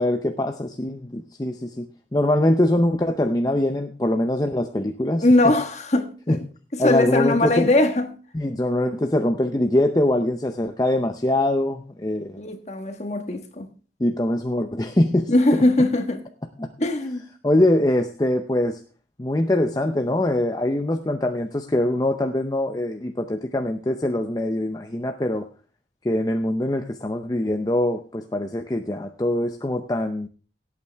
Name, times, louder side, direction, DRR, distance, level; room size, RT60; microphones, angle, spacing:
voice 1, 0.0-5.3 6.3-6.4 6.8-7.7 8.3-12.4 14.0-15.6 16.6-16.7 17.4-18.8 19.2-25.5 26.0-30.3, left 1 dB, 20° left, 0.6 m, -23 dB
voice 2, 5.2-6.4 6.8-8.2 12.4-13.7 15.3-16.2 16.8-17.2, left 2 dB, 40° left, 1.5 m, -20 dB
17.5 x 8.6 x 3.4 m
head